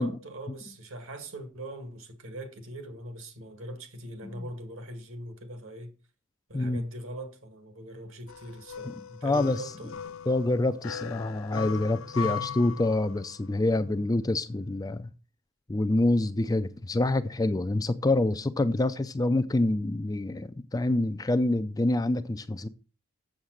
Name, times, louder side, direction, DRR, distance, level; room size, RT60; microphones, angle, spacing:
voice 1, 0.0-5.9 6.5-10.2, right 1 dB, 60° right, 1.9 m, -41 dB
sound 1, 8.3-13.5, left 7 dB, 60° left, 0.6 m, -38 dB
voice 2, 9.2-9.6 10.3-15.1 15.7-22.7, left 2 dB, 15° left, 0.4 m, -26 dB
7.3 x 7.2 x 6.3 m
head